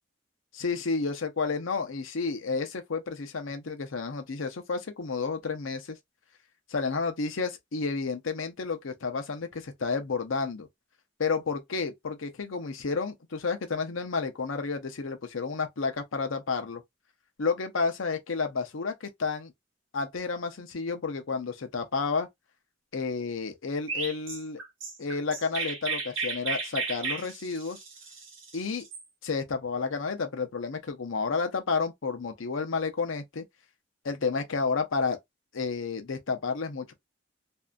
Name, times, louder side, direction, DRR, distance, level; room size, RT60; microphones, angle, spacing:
voice 1, 0.5-6.0 6.7-10.7 11.2-16.8 17.4-19.5 19.9-22.3 22.9-24.6 25.0-27.8 28.5-28.8 29.2-33.4 34.0-35.2 35.5-36.9, left 4 dB, 85° left, 0.7 m, -31 dB
Chirp tweet, 23.9-29.0, right 4 dB, 75° right, 0.9 m, -34 dB
2.7 x 2.5 x 2.2 m
head